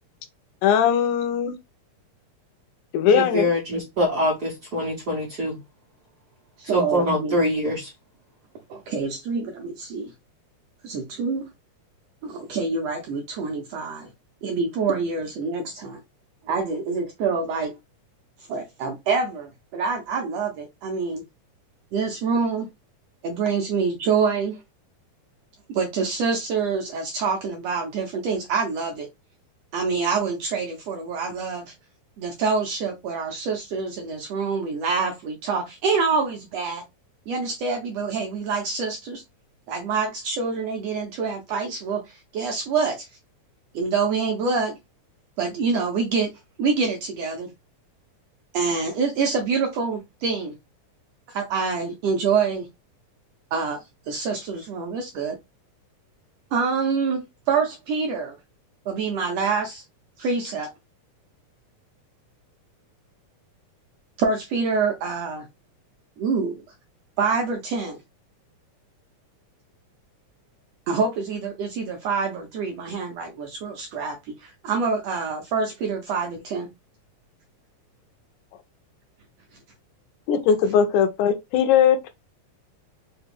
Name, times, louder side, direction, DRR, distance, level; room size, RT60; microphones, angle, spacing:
voice 1, 0.6-1.6 2.9-3.5 80.3-82.1, left 8 dB, 85° left, 2.2 m, -19 dB
voice 2, 3.0-5.6 6.7-7.9, equal, 50° right, 1.2 m, -24 dB
voice 3, 6.6-7.3 8.7-10.1 10.8-11.5 12.2-14.1 14.4-16.0 16.5-17.8 18.5-21.2 21.9-22.7 23.2-24.6 25.7-29.1 29.7-31.7 32.2-36.8 37.3-39.2 39.7-43.1 43.7-44.8 45.4-46.3 46.6-47.5 48.5-50.5 51.3-52.7 53.5-53.8 54.1-55.4 56.5-58.3 58.9-59.8 60.2-60.7 64.2-65.5 66.2-66.6 67.2-68.0 70.9-76.7, right 5 dB, 75° right, 1.5 m, -26 dB
5.0 x 2.3 x 3.3 m
omnidirectional pair, 3.6 m